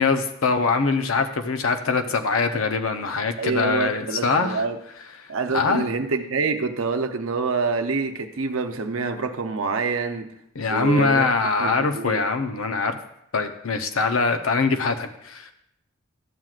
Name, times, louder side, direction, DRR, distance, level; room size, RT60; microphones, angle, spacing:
voice 1, 0.0-4.6 5.5-5.9 10.5-13.0 13.3-15.5, left 4 dB, 85° left, 7 dB, 0.7 m, -23 dB
voice 2, 3.4-4.8 5.3-10.3 10.7-11.3 11.6-12.2, right 4 dB, 85° right, 6 dB, 0.7 m, -26 dB
12.5 x 7.6 x 2.4 m, 0.77 s
head